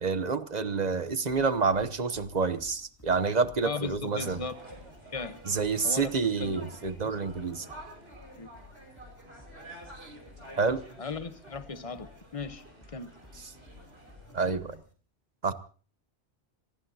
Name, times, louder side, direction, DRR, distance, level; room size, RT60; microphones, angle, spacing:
voice 1, 0.0-4.4 5.5-7.7 10.0-10.1 10.6-10.8 14.3-14.8 15.4-15.5, right 4 dB, 40° right, 1.1 m, -28 dB
sound 1, 1.3-14.9, left 2 dB, 15° left, 3.9 m, -55 dB
voice 2, 3.6-4.8 5.1-5.4 5.8-6.1 6.4-6.6 7.0-7.1 8.4-8.5 11.0-12.7 12.9-13.1, left 4 dB, 30° left, 1.2 m, -37 dB
sound 2, 4.1-14.8, right 1 dB, 60° right, 6.0 m, -50 dB
26.5 x 19.0 x 2.8 m
omnidirectional pair, 1.2 m